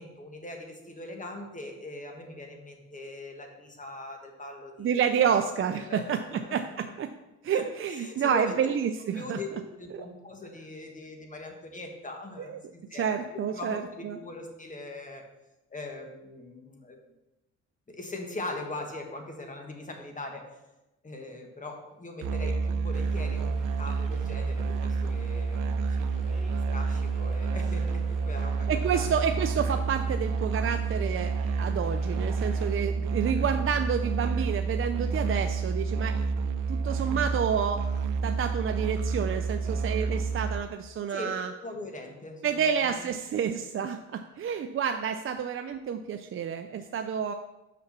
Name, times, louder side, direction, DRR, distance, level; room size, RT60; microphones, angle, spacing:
voice 1, 0.0-5.4 5.7-6.6 7.5-8.6 9.1-15.2 15.7-17.0 17.9-20.5 21.0-29.1 41.1-41.3 41.6-43.1 43.5-43.6 46.8-46.9, left 2 dB, 25° left, 3 dB, 1.6 m, -41 dB
voice 2, 4.8-7.1 7.4-9.4 9.9-10.0 12.5-12.6 13.0-14.2 28.7-36.2 36.7-37.8 38.2-41.5 42.4-47.3, right 7 dB, 45° right, 6 dB, 0.5 m, -29 dB
Musical instrument, 22.2-40.6, right 4 dB, 85° right, 0.6 m, -29 dB
sound 1, 22.9-32.7, equal, ahead, 2.1 m, -52 dB
6.1 x 5.8 x 5.8 m, 0.99 s
cardioid pair, 90°, 30 cm